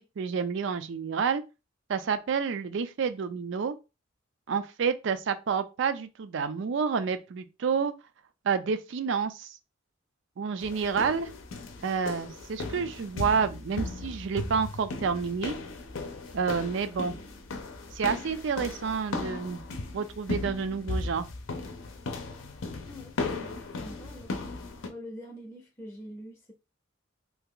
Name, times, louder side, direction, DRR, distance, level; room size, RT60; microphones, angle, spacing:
voice 1, 0.0-1.4 1.9-3.7 4.5-7.9 8.4-9.5 10.4-11.3 11.8-15.5 16.3-17.2 17.9-19.6 19.9-21.3, right 6 dB, 65° right, 0.4 m, -29 dB
sound 1, 10.6-24.9, left 3 dB, 85° left, 0.6 m, -37 dB
voice 2, 22.8-24.3 24.9-26.5, equal, 15° left, 0.6 m, -45 dB
2.8 x 2.3 x 3.6 m
head